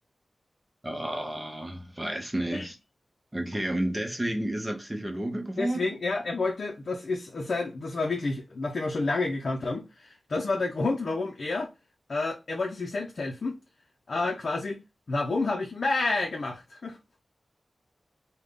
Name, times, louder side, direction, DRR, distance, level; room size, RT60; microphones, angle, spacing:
voice 1, 0.8-2.8 3.3-5.8, right 1 dB, 15° right, 0.7 m, -31 dB
voice 2, 5.6-11.7 12.1-13.6 14.1-14.8 15.1-17.0, left 3 dB, 65° left, 0.5 m, -29 dB
3.6 x 2.2 x 3.4 m
wide cardioid pair, 110°, 0 cm